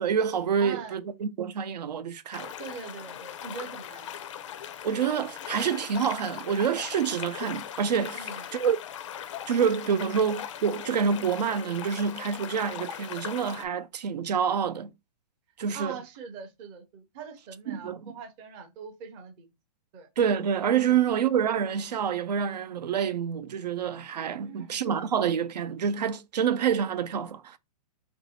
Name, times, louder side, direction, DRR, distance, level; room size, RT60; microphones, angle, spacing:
voice 1, 0.0-2.5 4.8-8.8 9.5-14.9 15.6-16.0 17.7-18.1 20.2-27.6, right 7 dB, 85° right, 0.6 m, -27 dB
voice 2, 0.6-1.0 2.6-4.2 8.1-8.5 15.7-19.5 19.9-20.1 20.9-21.0 24.4-24.8, right 5 dB, 20° right, 0.5 m, -42 dB
sound 1, 2.3-13.7, left 10 dB, 50° left, 0.4 m, -39 dB
3.0 x 2.6 x 4.1 m
hypercardioid pair, 165°, 21 cm